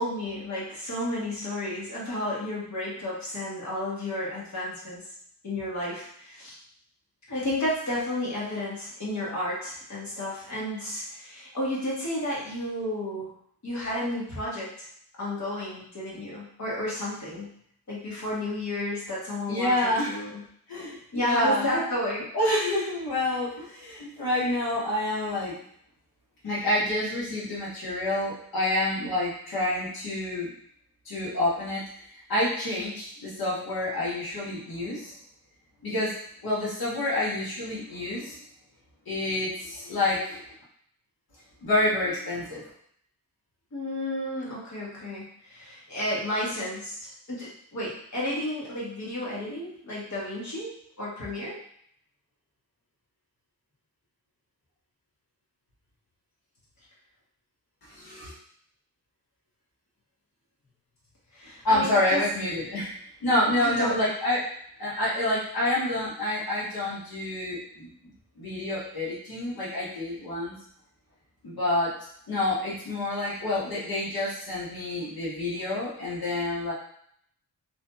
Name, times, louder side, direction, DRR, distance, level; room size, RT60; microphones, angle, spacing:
voice 1, 0.0-5.0 5.4-6.6 7.3-13.3 13.6-14.9 15.2-17.5 17.9-19.7 20.0-20.4 20.8-22.3 43.7-51.6 61.3-62.2 63.6-64.1, left 1 dB, 45° left, -6 dB, 1.1 m, -32 dB
voice 2, 19.5-20.2 20.7-21.7 22.3-25.5 26.4-30.5 31.0-31.8 32.3-35.1 35.8-36.1 36.4-38.4 39.1-40.4 41.6-42.7 57.8-58.3 61.6-62.9 63.2-64.4 64.8-67.9 68.4-70.5 71.4-71.9 72.3-76.7, left 1 dB, 65° left, -7 dB, 1.2 m, -28 dB
2.9 x 2.6 x 2.2 m, 0.66 s
wide cardioid pair, 135°, 39 cm